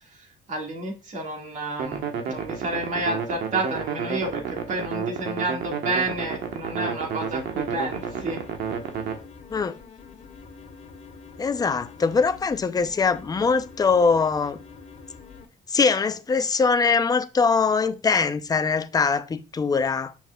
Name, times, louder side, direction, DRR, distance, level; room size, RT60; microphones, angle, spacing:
voice 1, 0.5-8.4, right 2 dB, 45° right, 2.0 m, -30 dB
sound 1, 1.8-9.2, right 7 dB, 75° right, 1.2 m, -31 dB
sound 2, 7.3-15.5, left 5 dB, 45° left, 1.7 m, -45 dB
voice 2, 11.4-14.6 15.7-20.1, left 5 dB, 20° left, 0.5 m, -22 dB
7.2 x 5.8 x 2.3 m
cardioid pair, 110°, 17 cm